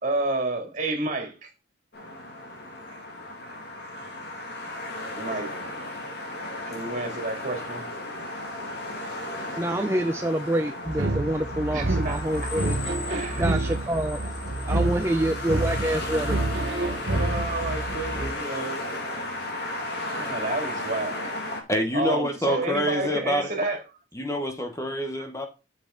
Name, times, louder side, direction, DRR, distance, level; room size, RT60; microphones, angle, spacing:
voice 1, 0.0-1.5 2.9-3.0 3.4-4.0 4.3-4.4 4.7-4.9 5.2-5.5 6.2-6.3 6.6-7.8 11.7-12.5 13.1-13.6 14.6-15.2 17.1-19.3 19.6-19.7 20.1-21.5 21.9-23.8, right 2 dB, 40° right, 2.8 m, -31 dB
sound 1, 1.9-21.6, left 2 dB, 55° left, 2.4 m, -35 dB
voice 2, 9.6-12.7 13.4-14.2 14.7-16.4, right 1 dB, 15° right, 0.5 m, -26 dB
sound 2, 10.9-18.3, right 2 dB, 70° right, 1.1 m, -28 dB
voice 3, 21.7-23.5 24.1-25.5, left 1 dB, 15° left, 1.0 m, -26 dB
8.4 x 7.4 x 3.9 m
head